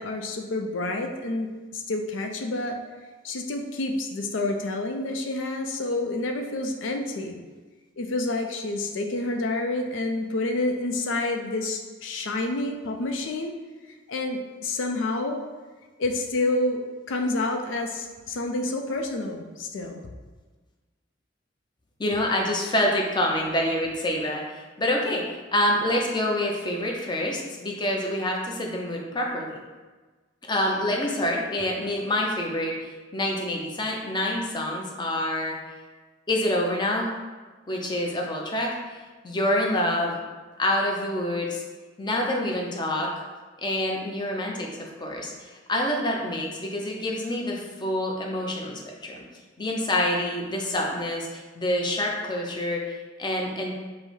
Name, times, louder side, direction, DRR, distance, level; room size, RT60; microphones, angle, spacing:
voice 1, 0.0-2.8 3.2-7.4 8.0-13.5 14.1-15.4 16.0-16.8 17.1-20.0, left 2 dB, 90° left, 4 dB, 0.5 m, -28 dB
voice 2, 22.0-29.6 30.5-32.7 33.1-35.6 36.3-37.2 37.7-38.7 39.2-40.2 40.6-41.6 42.0-43.1 43.6-49.2 49.6-53.7, left 1 dB, 25° left, 0 dB, 0.5 m, -27 dB
5.4 x 2.0 x 3.1 m, 1.3 s
head